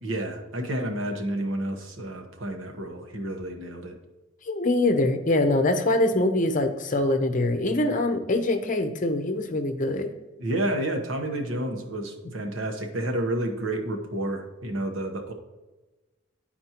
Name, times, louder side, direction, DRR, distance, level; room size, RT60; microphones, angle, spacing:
voice 1, 0.0-3.9 10.4-15.3, right 1 dB, 85° right, 4 dB, 1.1 m, -30 dB
voice 2, 4.5-10.1, left 2 dB, 40° left, 6 dB, 0.7 m, -24 dB
10.5 x 4.3 x 2.9 m, 1.1 s
head